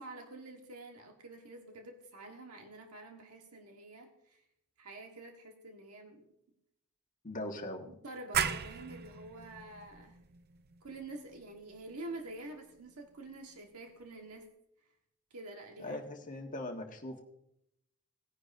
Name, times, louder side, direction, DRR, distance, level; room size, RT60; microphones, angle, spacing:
voice 1, 0.0-4.4 4.8-6.3 8.0-10.2 10.8-14.5 15.3-16.0, right 2 dB, 85° right, 2 dB, 1.4 m, -47 dB
voice 2, 7.2-7.9 15.8-17.2, left 1 dB, 35° left, 2 dB, 1.6 m, -40 dB
sound 1, 8.3-13.7, right 7 dB, 45° right, 0.5 m, -39 dB
19.0 x 9.9 x 2.6 m, 0.80 s
head